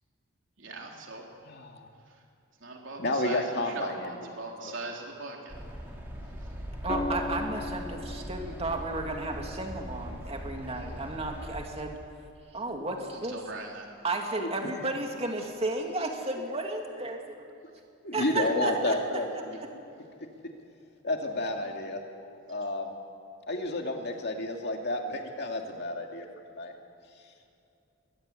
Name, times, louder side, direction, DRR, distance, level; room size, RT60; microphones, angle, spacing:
voice 1, 0.6-1.3 2.0-2.2 2.6-5.5 6.4-6.5 13.1-13.9, right 2 dB, 65° right, 0 dB, 3.8 m, -40 dB
voice 2, 1.5-1.9 3.0-4.1 4.6-4.7 12.8-12.9 14.4-14.8 18.0-19.6 21.0-22.9 23.5-26.3 26.5-26.7, left 2 dB, 55° left, 2 dB, 2.6 m, -31 dB
sound 1, 5.5-11.6, equal, 10° right, 4.1 m, -40 dB
voice 3, 6.8-12.0 12.5-13.4 14.0-17.3 18.1-19.0, right 2 dB, 30° right, 2 dB, 2.6 m, -33 dB
sound 2, 6.9-11.0 12.7-13.1, left 3 dB, 25° left, 0.4 m, -38 dB
22.5 x 19.0 x 8.3 m, 2.7 s
head